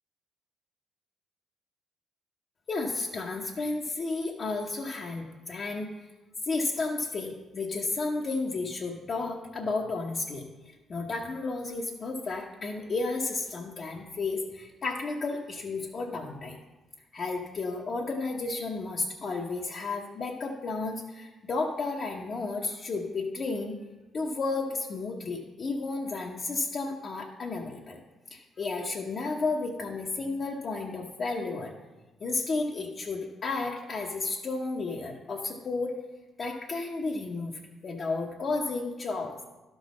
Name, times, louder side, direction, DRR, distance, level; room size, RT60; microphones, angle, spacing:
voice 1, 2.7-5.9 6.5-10.4 10.9-16.5 17.1-23.7 24.1-28.0 28.3-31.7 32.2-36.0 36.4-39.3, left 3 dB, 50° left, -2 dB, 1.0 m, -32 dB
12.0 x 4.0 x 6.1 m, 1.1 s
cardioid pair, 90°, 0 cm